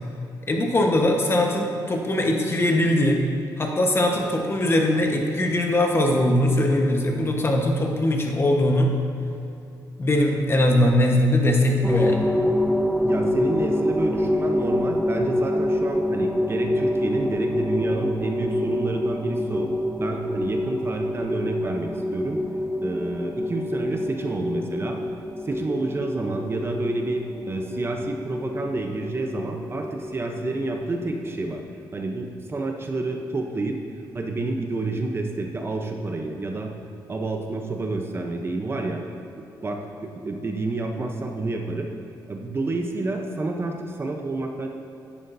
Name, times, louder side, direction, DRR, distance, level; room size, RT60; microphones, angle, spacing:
voice 1, 0.5-3.2 3.6-8.9 10.0-12.3, left 1 dB, 30° left, 2 dB, 1.2 m, -21 dB
sound 1, 11.8-31.6, left 1 dB, ahead, 0.3 m, -27 dB
voice 2, 13.0-19.7 20.0-22.4 22.8-25.0 25.5-31.6 31.9-33.8 34.1-36.7 37.1-39.0 39.6-41.9 42.3-44.7, right 2 dB, 30° right, 2 dB, 0.8 m, -29 dB
10.5 x 8.7 x 2.7 m, 2.8 s
cardioid pair, 95°, 8 cm